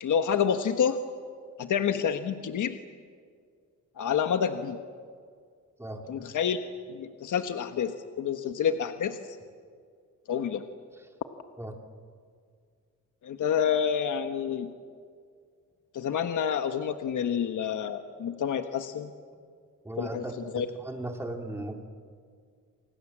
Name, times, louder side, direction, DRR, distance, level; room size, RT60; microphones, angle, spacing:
voice 1, 0.0-1.0 1.6-2.8 4.0-4.8 6.1-6.6 6.9-9.2 10.3-10.6 13.2-14.7 15.9-19.1 20.0-20.2 20.5-20.7, left 8 dB, 70° left, 7 dB, 1.4 m, -28 dB
voice 2, 5.8-6.1 11.0-11.1 11.6-11.7 19.8-21.7, right 1 dB, 10° right, 3 dB, 3.1 m, -37 dB
28.5 x 27.0 x 7.5 m, 2.1 s
wide cardioid pair, 150°, 32 cm